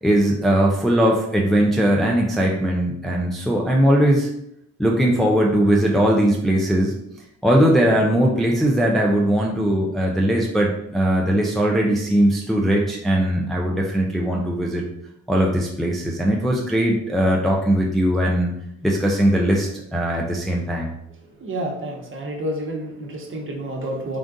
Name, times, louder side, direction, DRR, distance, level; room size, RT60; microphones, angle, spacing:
voice 1, 0.0-4.3 4.8-6.9 7.4-14.8 15.3-18.5 18.8-20.9, right 1 dB, ahead, -2 dB, 0.5 m, -19 dB
voice 2, 21.4-24.2, right 1 dB, 40° right, 0 dB, 1.1 m, -29 dB
3.7 x 2.5 x 3.7 m, 0.76 s
cardioid pair, 90°, 30 cm